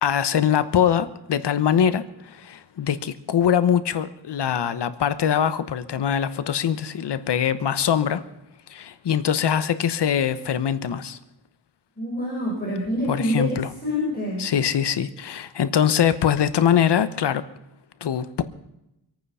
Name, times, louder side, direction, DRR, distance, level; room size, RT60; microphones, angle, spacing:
voice 1, 0.0-8.2 8.7-11.2 13.1-13.7 14.4-17.4 18.0-18.4, left 8 dB, 70° left, 13 dB, 1.0 m, -23 dB
voice 2, 12.0-14.5, equal, 20° left, -5 dB, 5.2 m, -26 dB
25.0 x 9.2 x 5.6 m, 0.88 s
wide cardioid pair, 125°, 42 cm